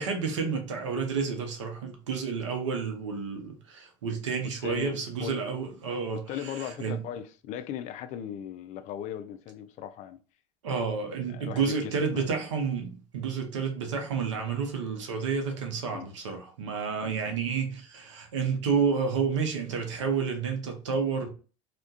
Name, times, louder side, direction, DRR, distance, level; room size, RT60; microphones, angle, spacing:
voice 1, 0.0-7.0 10.6-21.3, right 5 dB, 85° right, 0.6 m, -30 dB
voice 2, 4.4-5.4 6.1-10.2 11.3-12.3 15.9-16.1 17.0-17.4, left 9 dB, 50° left, 0.4 m, -38 dB
2.3 x 2.1 x 2.5 m
hypercardioid pair, 75°, 15 cm